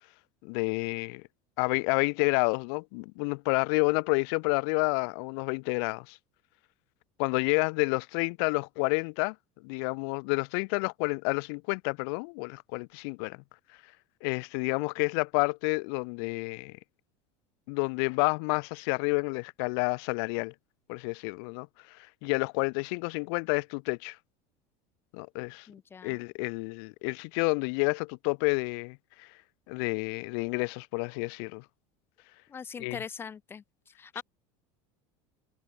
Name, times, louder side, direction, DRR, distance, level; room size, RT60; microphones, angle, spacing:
voice 1, 0.4-1.2 1.6-6.2 7.2-9.3 9.6-13.4 14.2-16.8 17.7-20.5 20.9-21.7 22.2-24.2 25.1-25.7 26.0-29.3 29.7-31.6 32.8-33.0 34.1-34.2, left 37 dB, 60° left, 0.7 m, -29 dB
voice 2, 25.7-26.2 32.5-34.2, left 6 dB, 15° left, 0.6 m, -42 dB
cardioid pair, 170°, 14 cm